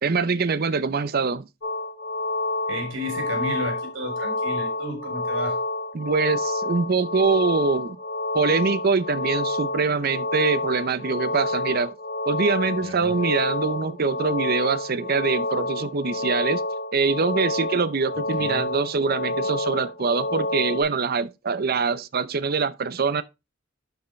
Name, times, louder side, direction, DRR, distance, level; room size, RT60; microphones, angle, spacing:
voice 1, 0.0-1.5 5.9-8.0 8.3-11.9 12.3-16.6 16.9-23.2, right 4 dB, 50° right, 0.6 m, -24 dB
sound 1, 1.6-20.8, left 2 dB, 60° left, 4.4 m, -28 dB
voice 2, 2.7-5.6 12.8-13.1 18.4-18.6, equal, 70° right, 3.4 m, -32 dB
11.5 x 4.9 x 3.2 m
head